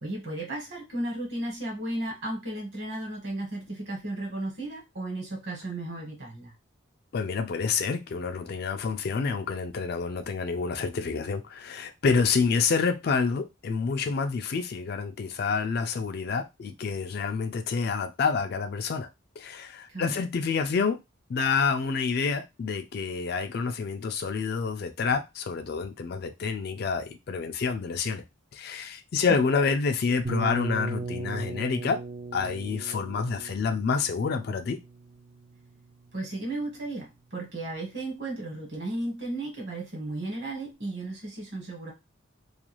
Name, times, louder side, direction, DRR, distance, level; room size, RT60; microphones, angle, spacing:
voice 1, 0.0-6.5 19.9-20.2 29.3-29.4 36.1-41.9, right 2 dB, 55° right, 1.2 m, -34 dB
voice 2, 7.1-19.1 19.4-21.0 21.3-28.2 28.5-32.0 32.3-34.8, left 5 dB, 50° left, 0.3 m, -28 dB
sound 1, 30.2-36.0, right 3 dB, 30° right, 0.3 m, -37 dB
2.4 x 2.3 x 3.0 m
head